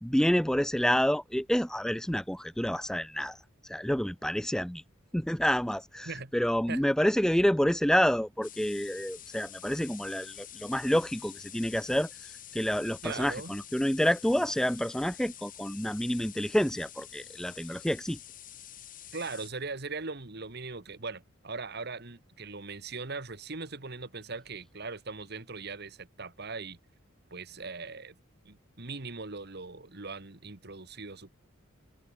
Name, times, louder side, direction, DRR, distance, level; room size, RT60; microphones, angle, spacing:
voice 1, 0.0-3.4 3.6-4.8 5.1-18.2, equal, 5° left, 0.6 m, -28 dB
sound 1, 8.4-19.5, left 12 dB, 40° left, 3.8 m, -48 dB
voice 2, 13.0-13.5 19.1-26.8 27.3-28.2 28.5-31.3, right 4 dB, 55° right, 1.8 m, -40 dB
head